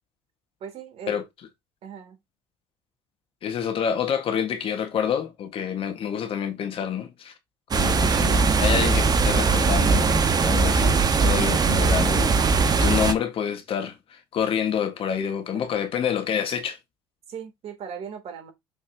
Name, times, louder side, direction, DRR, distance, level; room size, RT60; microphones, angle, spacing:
voice 1, 0.6-1.2 1.8-2.2 15.5-15.9 17.3-18.5, right 7 dB, 55° right, 3.0 m, -38 dB
voice 2, 3.4-7.3 7.7-16.8, left 8 dB, 50° left, 1.7 m, -28 dB
sound 1, 7.7-13.1, right 4 dB, 35° right, 1.3 m, -20 dB
6.6 x 5.7 x 2.9 m
hypercardioid pair, 65°, 12 cm